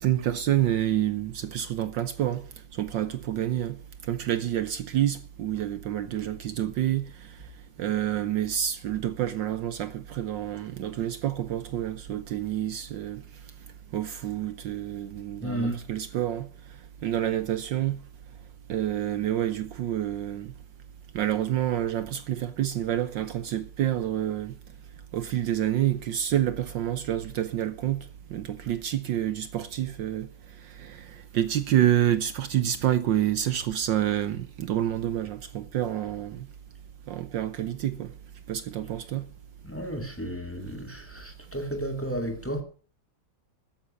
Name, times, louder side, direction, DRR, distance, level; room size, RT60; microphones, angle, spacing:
voice 1, 0.0-2.4 2.7-3.8 4.1-7.1 7.8-13.2 13.9-16.5 17.0-18.0 18.7-20.5 21.1-24.5 25.1-28.1 28.3-30.3 30.7-36.5 37.1-38.1 38.5-39.3, right 11 dB, 70° right, 1.4 m, -28 dB
voice 2, 15.4-15.8 39.6-42.6, right 1 dB, 5° left, 2.4 m, -32 dB
13.5 x 10.0 x 6.5 m
omnidirectional pair, 2.2 m